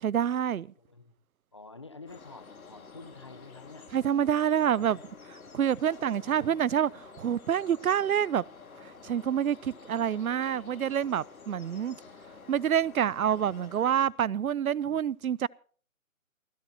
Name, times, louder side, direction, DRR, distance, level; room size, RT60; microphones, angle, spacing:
voice 1, 0.0-0.7 3.9-5.0 5.5-8.4 9.0-12.0 12.5-15.5, right 9 dB, 90° right, 0.6 m, -27 dB
voice 2, 0.8-1.1 1.5-3.9 4.8-5.0 5.8-6.5 9.6-9.8 11.6-11.7, left 3 dB, 20° left, 0.7 m, -49 dB
sound 1, 2.1-14.1, left 4 dB, 85° left, 3.1 m, -50 dB
29.0 x 11.5 x 2.8 m
hypercardioid pair, 170°, 41 cm